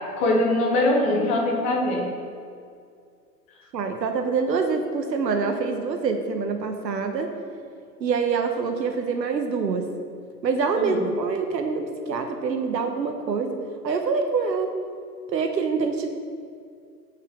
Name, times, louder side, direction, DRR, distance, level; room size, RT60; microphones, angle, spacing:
voice 1, 0.2-2.1 10.8-11.0, left 1 dB, 10° left, 0 dB, 0.3 m, -22 dB
voice 2, 3.7-7.3 8.0-9.9 10.4-13.6 13.8-14.8 15.3-16.1, right 5 dB, 85° right, 5 dB, 1.1 m, -25 dB
7.8 x 5.5 x 7.3 m, 2.3 s
hypercardioid pair, 120°, 49 cm